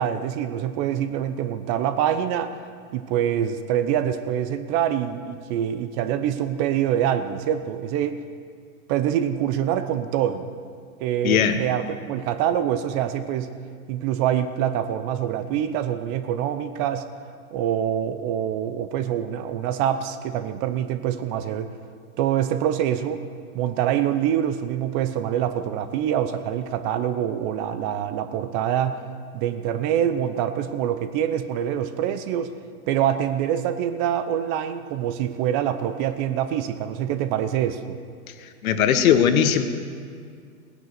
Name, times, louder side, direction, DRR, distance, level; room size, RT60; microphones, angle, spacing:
voice 1, 0.0-2.6 2.9-8.2 8.9-10.5 11.0-13.5 13.9-17.1 17.5-21.7 22.2-23.2 23.5-29.0 29.3-32.5 32.9-38.0, right 10 dB, 35° right, 11 dB, 0.7 m, -25 dB
voice 2, 11.2-11.6 38.4-39.6, left 8 dB, 70° left, 9 dB, 1.3 m, -19 dB
17.0 x 10.0 x 6.6 m, 2.2 s
hypercardioid pair, 130°, 45 cm